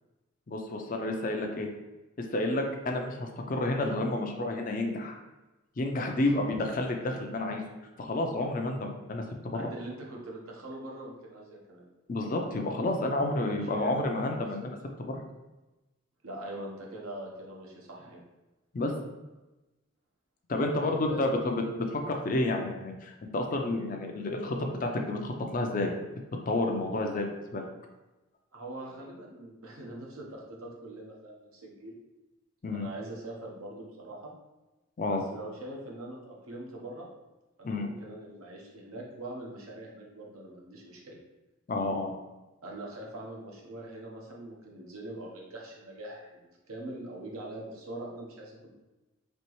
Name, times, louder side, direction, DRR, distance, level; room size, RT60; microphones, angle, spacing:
voice 1, 0.5-1.7 2.3-5.2 5.8-7.6 8.0-9.7 12.1-14.7 15.1-15.2 18.7-18.9 20.5-27.6 32.6-32.9 35.0-35.2 37.6-37.9 41.7-42.1, left 2 dB, 40° left, 2 dB, 0.4 m, -30 dB
voice 2, 6.1-6.4 9.5-11.8 13.3-14.7 16.2-18.2 20.8-21.5 28.5-32.0 32.7-34.3 35.0-37.1 37.6-41.2 42.6-48.7, right 1 dB, 85° right, -2 dB, 1.0 m, -43 dB
4.3 x 3.0 x 3.0 m, 1.1 s
head